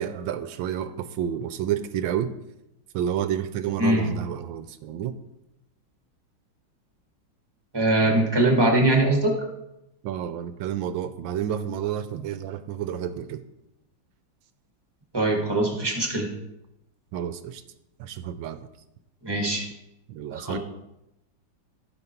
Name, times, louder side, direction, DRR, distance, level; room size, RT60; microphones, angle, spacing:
voice 1, 0.0-2.3 2.9-5.1 10.0-13.4 17.1-17.6 18.0-18.7 20.1-20.6, right 10 dB, 75° right, 11 dB, 1.3 m, -30 dB
voice 2, 7.7-9.3 15.1-16.3 19.2-19.7 20.3-20.6, right 1 dB, 15° right, 1 dB, 1.6 m, -22 dB
14.5 x 5.3 x 4.4 m, 0.88 s
omnidirectional pair, 2.3 m